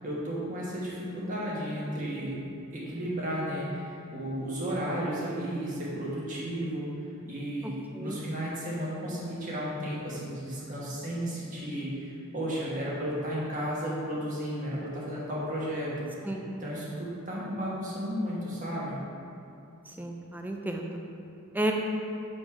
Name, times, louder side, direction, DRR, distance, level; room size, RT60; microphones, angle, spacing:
voice 1, 0.0-2.4 2.7-6.9 7.2-16.3 16.6-19.0, equal, 35° right, -6 dB, 1.4 m, -33 dB
voice 2, 7.6-8.2 16.2-16.5 19.9-21.0 21.5-21.7, right 1 dB, 10° right, 1 dB, 0.4 m, -33 dB
7.0 x 4.2 x 4.6 m, 2.7 s
head